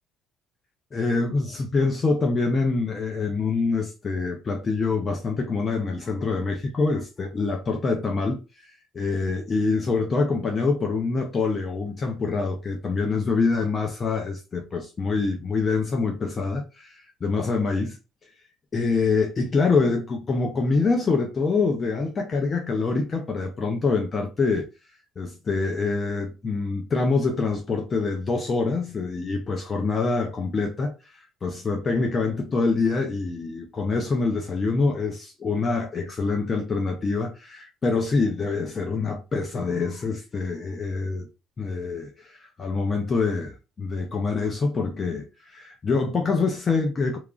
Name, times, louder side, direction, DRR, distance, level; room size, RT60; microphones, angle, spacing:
voice 1, 0.9-8.7 8.9-18.0 18.7-24.6 25.2-41.3 41.6-47.2, left 4 dB, 30° left, 0.4 m, -25 dB
2.9 x 2.3 x 2.4 m
cardioid pair, 115°, 0 cm